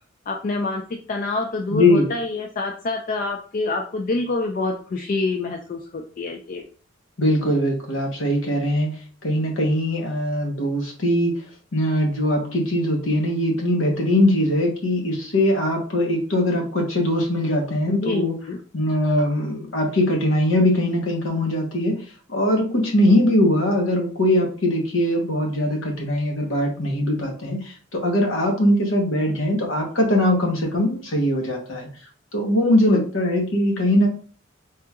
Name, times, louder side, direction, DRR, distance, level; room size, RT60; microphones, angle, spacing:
voice 1, 0.3-6.6 17.9-18.6 32.5-33.1, left 3 dB, 40° left, 3 dB, 0.3 m, -26 dB
voice 2, 1.7-2.1 7.2-8.9 9.2-11.4 11.7-18.3 18.7-21.9 22.3-31.9 32.3-34.1, left 1 dB, 70° left, 1 dB, 1.0 m, -21 dB
3.5 x 2.8 x 2.2 m, 0.41 s
head